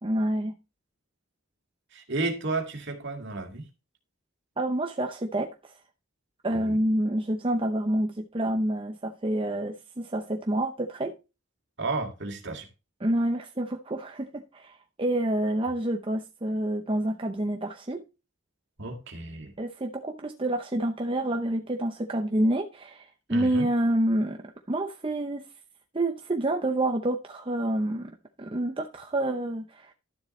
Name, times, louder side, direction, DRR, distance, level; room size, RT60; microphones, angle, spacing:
voice 1, 0.0-0.6 4.6-5.7 6.4-11.2 13.0-18.0 19.6-25.4 25.9-29.9, right 1 dB, 25° right, 0.7 m, -28 dB
voice 2, 1.9-3.7 6.5-6.8 11.8-12.7 18.8-19.5 23.3-23.7, right 3 dB, 55° right, 2.3 m, -32 dB
12.5 x 7.2 x 3.1 m
head